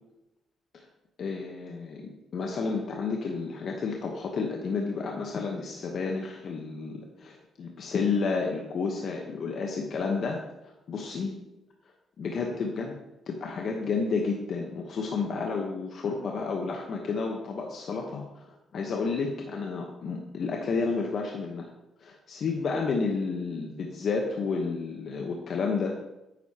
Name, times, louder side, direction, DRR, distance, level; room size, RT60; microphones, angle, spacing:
voice 1, 1.2-11.4 12.2-13.0 13.3-21.7 22.0-25.9, left 4 dB, 60° left, 0 dB, 1.1 m, -31 dB
9.4 x 8.0 x 2.9 m, 0.92 s
cardioid pair, 90°, 0 cm